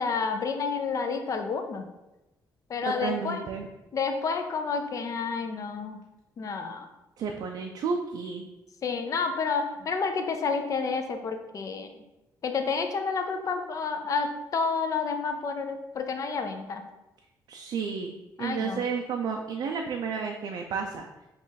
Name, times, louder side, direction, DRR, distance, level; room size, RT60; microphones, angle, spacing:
voice 1, 0.0-1.9 2.7-3.5 3.9-6.0 6.4-6.9 8.8-11.9 12.4-16.8 18.4-18.8, left 5 dB, 50° left, 6 dB, 0.6 m, -30 dB
voice 2, 2.9-3.7 7.2-8.5 17.5-21.3, right 5 dB, 70° right, 2 dB, 0.4 m, -32 dB
5.2 x 2.5 x 4.0 m, 0.99 s
cardioid pair, 100°, 7 cm